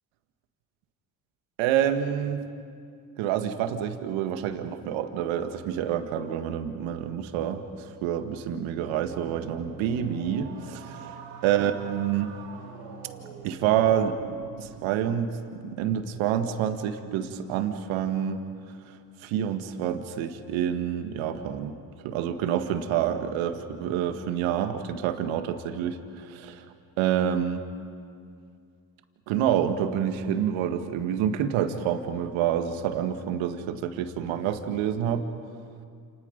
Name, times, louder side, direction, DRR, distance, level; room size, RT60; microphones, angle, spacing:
voice 1, 1.6-2.4 3.2-11.1 11.4-12.3 13.4-14.2 14.6-15.3 15.6-18.4 19.2-21.7 22.0-26.7 27.0-27.7 29.3-35.2, right 9 dB, 75° right, 8 dB, 1.9 m, -27 dB
sound 1, 8.8-14.8, right 7 dB, 90° right, 3.2 m, -43 dB
29.5 x 28.5 x 5.3 m, 2.3 s
hypercardioid pair, 70°, 48 cm